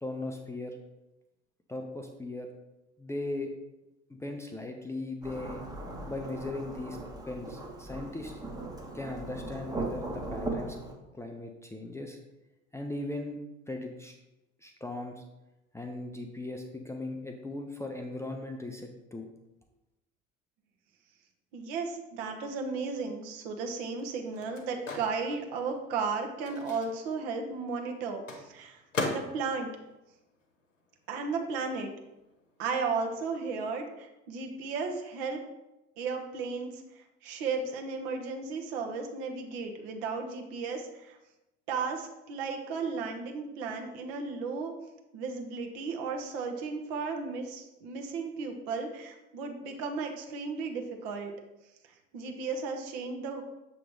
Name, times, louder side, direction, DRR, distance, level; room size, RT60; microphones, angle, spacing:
voice 1, 0.0-0.8 1.7-2.5 3.0-3.5 4.1-5.6 6.1-7.0 7.3-8.4 8.9-10.8 11.1-12.2 12.7-13.4 13.7-14.2 14.6-15.2 15.7-19.3, left 2 dB, 10° left, 3 dB, 0.5 m, -38 dB
Thunderstorm / Rain, 5.2-10.9, right 2 dB, 10° right, 0.9 m, -38 dB
voice 2, 21.5-28.8 29.1-29.7 31.1-31.9 32.6-35.4 36.0-41.2 41.7-44.7 45.1-51.3 52.1-53.4, right 4 dB, 55° right, 3 dB, 1.0 m, -34 dB
Microwave oven, 23.0-31.1 31.4-33.3, left 3 dB, 85° left, 0.8 m, -41 dB
7.0 x 3.1 x 4.7 m, 0.97 s
figure-of-eight pair, 60°, 37 cm